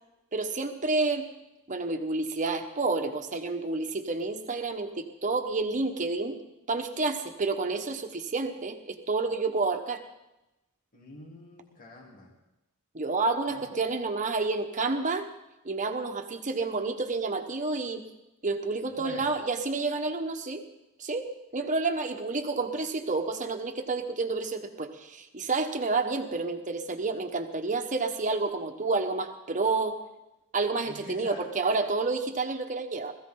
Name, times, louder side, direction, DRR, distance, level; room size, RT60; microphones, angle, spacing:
voice 1, 0.3-1.3 1.7-6.4 6.7-10.0 12.9-15.3 15.6-18.0 18.4-20.6 21.0-21.3 21.5-30.0 30.5-33.1, right 3 dB, 35° right, 5 dB, 1.3 m, -29 dB
voice 2, 10.9-12.4 13.5-13.6 19.0-19.3 30.8-31.4, left 2 dB, 40° left, -2 dB, 3.4 m, -45 dB
20.5 x 15.0 x 3.9 m, 0.95 s
head